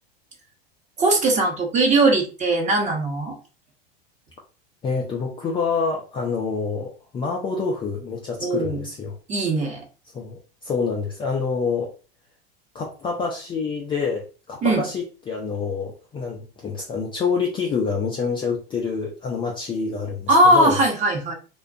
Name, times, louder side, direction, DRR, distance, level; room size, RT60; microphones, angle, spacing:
voice 1, 1.0-3.4 8.4-8.8 9.3-9.8 14.6-14.8 20.3-21.3, right 2 dB, 25° right, 0 dB, 0.9 m, -19 dB
voice 2, 4.8-9.2 10.1-11.9 12.7-20.8, left 5 dB, 15° left, -1 dB, 0.3 m, -27 dB
2.4 x 2.2 x 2.4 m, 0.35 s
hypercardioid pair, 105°, 30 cm